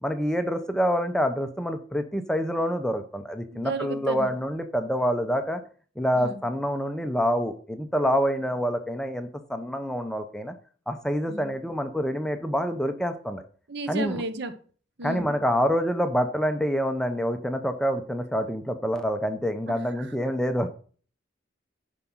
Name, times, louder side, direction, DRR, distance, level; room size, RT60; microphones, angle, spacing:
voice 1, 0.0-5.6 6.0-10.5 10.9-13.4 13.9-14.2 15.0-20.7, equal, 5° left, 7 dB, 0.8 m, -27 dB
voice 2, 3.5-4.3 6.2-6.4 11.3-11.5 13.7-14.5 15.0-15.3 19.7-19.8, right 2 dB, 60° right, 11 dB, 1.1 m, -33 dB
10.5 x 5.1 x 5.6 m, 0.42 s
head